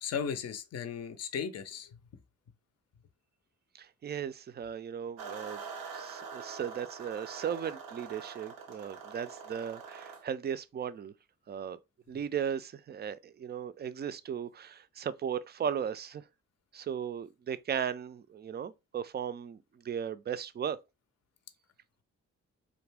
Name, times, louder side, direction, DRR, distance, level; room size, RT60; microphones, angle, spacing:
voice 1, 0.0-2.0, left 7 dB, 45° left, 0.6 m, -36 dB
voice 2, 3.7-5.6 5.9-11.1 11.5-11.8 12.1-16.2 16.7-20.8, right 8 dB, 30° right, 0.4 m, -36 dB
sound 1, 5.2-10.2, right 5 dB, 80° right, 0.6 m, -44 dB
2.4 x 2.2 x 3.3 m
hypercardioid pair, 40°, 35 cm